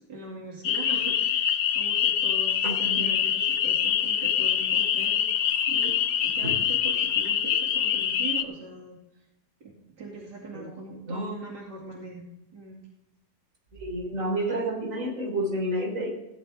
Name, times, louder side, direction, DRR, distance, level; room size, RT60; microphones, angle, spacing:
voice 1, 0.0-6.0 6.2-9.0 9.6-12.8, right 3 dB, 85° right, -2 dB, 3.2 m, -41 dB
sound 1, 0.6-8.4, left 9 dB, 60° left, 1.0 m, -25 dB
voice 2, 2.6-3.0 6.4-6.5 10.5-10.6 11.1-11.3 13.8-16.1, right 1 dB, 50° right, -1 dB, 3.9 m, -29 dB
16.5 x 11.0 x 3.6 m, 0.91 s
omnidirectional pair, 1.8 m